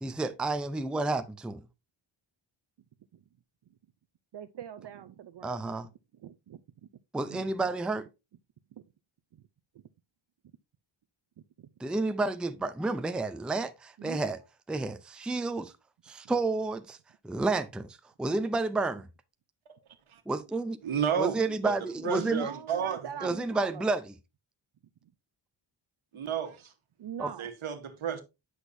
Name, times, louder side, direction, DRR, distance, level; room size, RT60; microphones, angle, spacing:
voice 1, 0.0-1.6 5.4-5.9 7.1-8.1 11.8-14.4 14.7-15.7 16.1-17.0 17.2-19.1 20.3-20.8 21.2-22.5 23.2-24.1 27.2-27.3, right 3 dB, ahead, 0.4 m, -30 dB
voice 2, 4.3-5.8 6.2-6.6 7.3-7.5 8.8-8.9 11.6-11.7 14.0-14.3 22.0-23.9 27.0-27.5, right 9 dB, 60° right, 0.6 m, -42 dB
voice 3, 20.8-21.8 22.0-23.3 26.1-26.7 27.4-28.2, right 8 dB, 85° right, 1.4 m, -32 dB
9.8 x 6.3 x 2.6 m
wide cardioid pair, 150°, 48 cm